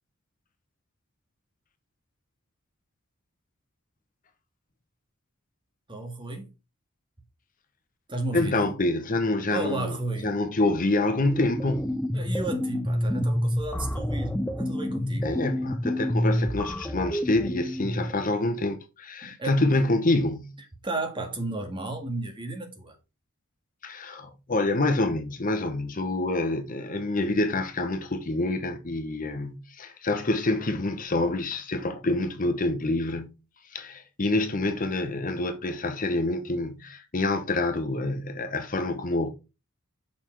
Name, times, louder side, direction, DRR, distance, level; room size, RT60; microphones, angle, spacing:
voice 1, 5.9-6.5 8.1-8.7 9.5-10.3 12.1-15.4 18.2-18.3 19.2-19.6 20.8-23.0, right 2 dB, 25° right, 1.9 m, -33 dB
voice 2, 8.3-10.0 10.2-12.0 15.2-20.5 23.8-33.3 33.7-39.3, left 2 dB, 40° left, 1.0 m, -27 dB
sound 1, 11.1-18.1, equal, 5° left, 0.6 m, -28 dB
6.9 x 5.4 x 4.5 m
head